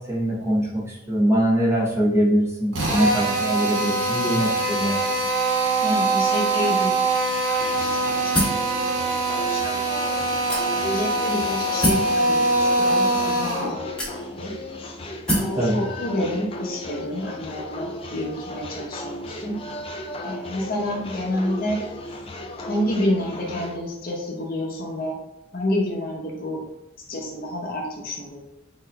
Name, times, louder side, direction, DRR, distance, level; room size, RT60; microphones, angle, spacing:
voice 1, 0.1-5.1 15.6-15.8, equal, 15° right, -5 dB, 0.8 m, -22 dB
Drill, 2.7-13.8, right 2 dB, 75° right, 1.0 m, -23 dB
voice 2, 5.8-8.4 8.8-9.8 10.5-14.5 15.3-19.6 20.2-21.8 22.7-25.1 25.5-26.6 27.1-28.4, left 1 dB, 45° left, -1 dB, 0.8 m, -29 dB
sound 1, 7.6-23.8, left 1 dB, 30° left, 0.3 m, -35 dB
sound 2, 8.3-8.7 9.5-9.6 10.5-11.0 11.8-12.1 13.1-13.2 14.0-14.5 15.3-15.6, equal, 5° left, 1.2 m, -24 dB
3.9 x 3.8 x 2.2 m, 0.88 s
head